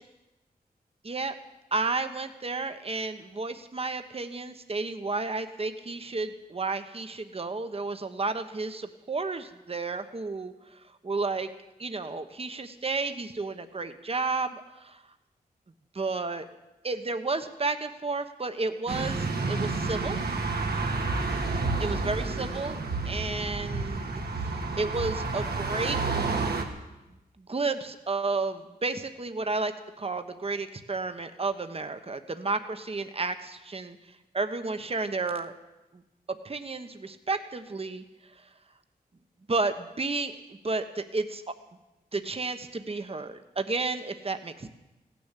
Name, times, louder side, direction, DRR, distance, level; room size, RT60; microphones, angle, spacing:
voice 1, 1.0-1.3 1.7-11.5 11.8-15.0 15.9-16.5 16.8-20.2 21.8-26.0 27.4-34.0 34.3-35.6 35.9-36.0 36.3-38.0 38.4-38.5 39.5-41.5 42.1-44.7, right 3 dB, 40° right, 8 dB, 1.2 m, -32 dB
sound 1, 18.9-26.6, right 3 dB, 80° right, 1.9 m, -30 dB
16.5 x 10.5 x 8.3 m, 1.0 s
cardioid pair, 60°, 16 cm